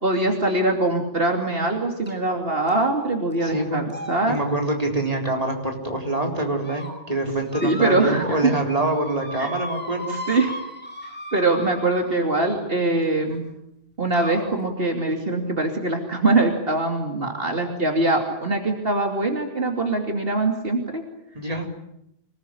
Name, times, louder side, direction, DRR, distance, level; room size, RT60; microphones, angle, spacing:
voice 1, 0.0-4.4 7.6-8.5 9.4-9.5 10.1-10.5 11.3-13.4 14.0-21.0, right 2 dB, 65° right, 3 dB, 3.0 m, -23 dB
sound 1, 2.1-2.3 2.7-3.0 3.3-3.5 3.9-5.8 6.3-6.9 7.5-8.5 8.7-12.4 13.3-13.4 14.1-14.5, left 1 dB, 10° left, 5.8 m, -37 dB
voice 2, 3.4-3.8 4.3-10.1 21.3-21.7, right 2 dB, 35° right, 2 dB, 4.4 m, -25 dB
27.0 x 19.5 x 10.0 m, 0.80 s
omnidirectional pair, 1.1 m